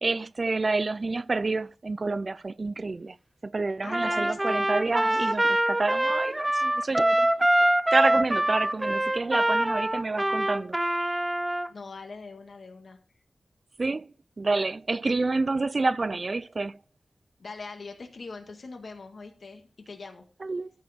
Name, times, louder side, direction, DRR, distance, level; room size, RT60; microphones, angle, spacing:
voice 1, 0.0-3.2 3.4-7.3 7.9-10.8 13.8-14.1 14.4-16.8 20.4-20.7, right 3 dB, 50° right, 0.5 m, -28 dB
voice 2, 3.8-5.3 11.7-13.0 17.4-20.3, left 4 dB, 75° left, 1.8 m, -42 dB
Trumpet, 3.9-11.7, right 1 dB, 20° right, 0.7 m, -24 dB
14.0 x 4.8 x 5.2 m
wide cardioid pair, 70°, 0 cm